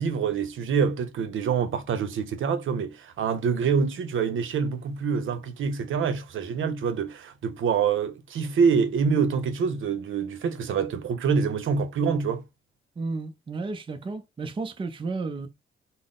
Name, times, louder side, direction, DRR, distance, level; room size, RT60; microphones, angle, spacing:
voice 1, 0.0-12.4, right 6 dB, 70° right, 0.6 m, -26 dB
voice 2, 13.0-15.5, right 3 dB, 25° right, 0.5 m, -32 dB
3.8 x 2.0 x 3.7 m
wide cardioid pair, 140°, 21 cm